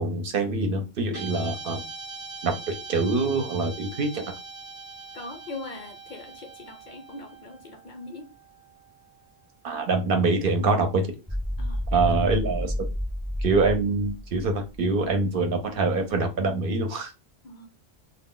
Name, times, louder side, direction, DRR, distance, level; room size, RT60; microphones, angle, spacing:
voice 1, 0.0-1.8 2.4-4.3 9.6-11.1 11.9-12.7 13.4-17.1, right 3 dB, 65° right, 0.7 m, -25 dB
Guitar, 1.1-9.6, right 4 dB, 35° right, 0.9 m, -42 dB
voice 2, 5.1-8.3 11.6-12.1 17.4-17.7, left 3 dB, 55° left, 0.6 m, -41 dB
sound 1, 11.3-15.5, equal, 10° left, 0.5 m, -31 dB
2.2 x 2.1 x 3.6 m
omnidirectional pair, 1.1 m